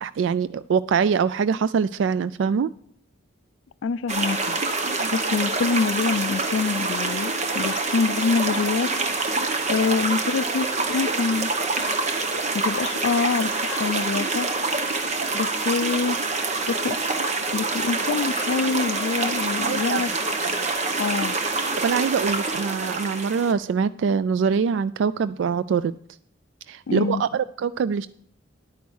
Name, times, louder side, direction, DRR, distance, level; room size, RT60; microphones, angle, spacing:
voice 1, 0.0-2.7 5.0-5.1 19.6-20.2 21.8-25.9 26.7-28.1, right 6 dB, 70° right, 16 dB, 0.3 m, -24 dB
voice 2, 3.8-4.6 5.1-8.9 9.7-11.5 12.5-14.5 15.3-16.2 16.7-17.0 17.5-20.2 21.0-21.3 26.9-27.2, left 5 dB, 75° left, 18 dB, 0.4 m, -25 dB
sound 1, 4.1-23.5, right 3 dB, 35° right, 1.0 m, -26 dB
10.5 x 9.4 x 4.6 m, 0.64 s
head